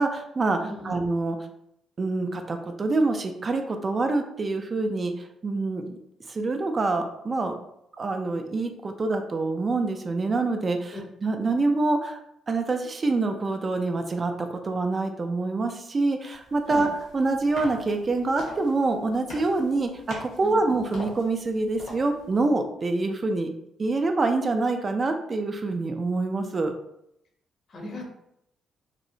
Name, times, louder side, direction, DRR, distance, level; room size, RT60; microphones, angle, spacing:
voice 1, 0.0-0.6 0.8-1.4 2.0-6.0 6.3-7.6 8.0-12.2 12.5-16.9 17.1-23.5 23.8-26.7, right 3 dB, 35° right, 6 dB, 0.3 m, -26 dB
voice 2, 0.6-1.0 10.9-11.0 16.7-16.9 20.4-20.6 27.7-28.1, left 1 dB, 55° left, 1 dB, 0.7 m, -37 dB
sound 1, 16.3-22.4, left 1 dB, 85° left, 0.9 m, -43 dB
2.8 x 2.0 x 2.5 m, 0.76 s
cardioid pair, 90°, 0 cm